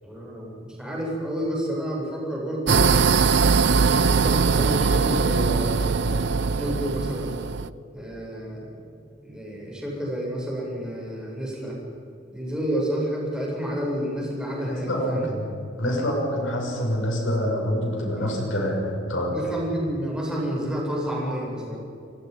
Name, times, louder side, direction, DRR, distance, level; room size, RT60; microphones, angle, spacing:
voice 1, 0.0-2.9 3.5-7.4 7.9-8.7 9.2-11.7 12.3-15.3 18.2-18.3 19.3-21.8, equal, 5° right, -4 dB, 7.8 m, -30 dB
sound 1, 2.7-7.7, right 5 dB, 65° right, 0.6 m, -21 dB
voice 2, 14.6-15.5 15.8-19.3, equal, 85° left, -1 dB, 7.2 m, -26 dB
29.5 x 19.5 x 5.6 m, 2.6 s
head